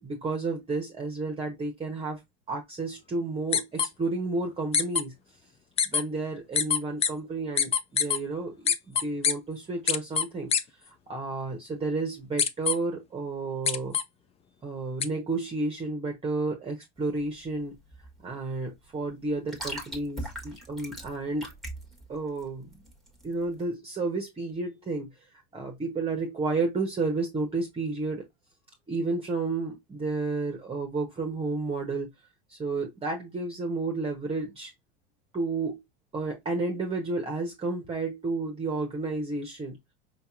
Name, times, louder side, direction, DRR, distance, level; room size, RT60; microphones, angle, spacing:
voice 1, 0.0-2.2 2.5-5.1 5.8-10.5 10.8-14.0 14.6-17.7 18.2-21.5 22.1-22.7 23.2-28.2 28.9-32.1 32.5-34.7 35.3-35.8 36.1-39.8, right 3 dB, 20° right, 0.9 m, -31 dB
sound 1, 3.5-3.9 4.7-5.0 5.8-6.0 6.5-7.1 7.6-8.2 8.7-9.3 9.9-10.2 10.5-10.6 12.4-12.7 13.7-14.0 15.0-15.1, left 7 dB, 20° left, 0.4 m, -23 dB
sound 2, 17.0-23.7, right 1 dB, ahead, 1.2 m, -41 dB
5.2 x 2.8 x 2.4 m
supercardioid pair, 100°, 32 cm